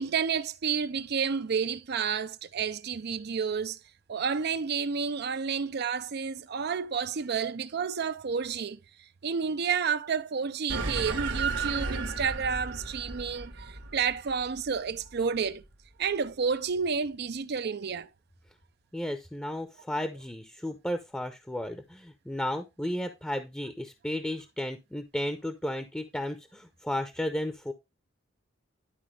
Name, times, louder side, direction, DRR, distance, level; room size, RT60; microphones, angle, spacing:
voice 1, 0.0-3.8 4.1-8.8 9.2-15.6 16.0-18.1, right 6 dB, 55° right, 0.5 m, -30 dB
sound 1, 10.7-15.5, right 4 dB, 80° right, 1.7 m, -34 dB
voice 2, 18.9-27.7, left 1 dB, 5° left, 0.7 m, -34 dB
11.5 x 4.5 x 3.3 m
head